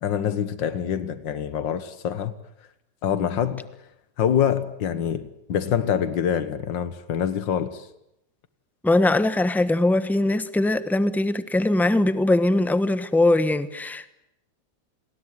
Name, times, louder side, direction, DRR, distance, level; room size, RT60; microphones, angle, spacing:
voice 1, 0.0-2.3 3.0-3.6 4.2-7.9, left 8 dB, 85° left, 2.0 m, -25 dB
voice 2, 8.8-14.1, left 2 dB, ahead, 0.9 m, -21 dB
29.0 x 20.5 x 9.6 m
omnidirectional pair, 1.9 m